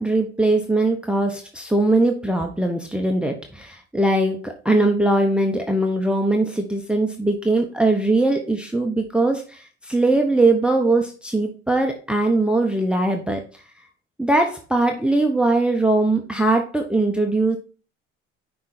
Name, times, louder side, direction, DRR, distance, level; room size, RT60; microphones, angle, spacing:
voice 1, 0.0-13.4 14.2-17.6, right 2 dB, 5° right, 3 dB, 1.0 m, -21 dB
6.0 x 4.3 x 4.3 m, 0.37 s
supercardioid pair, 70°, 30 cm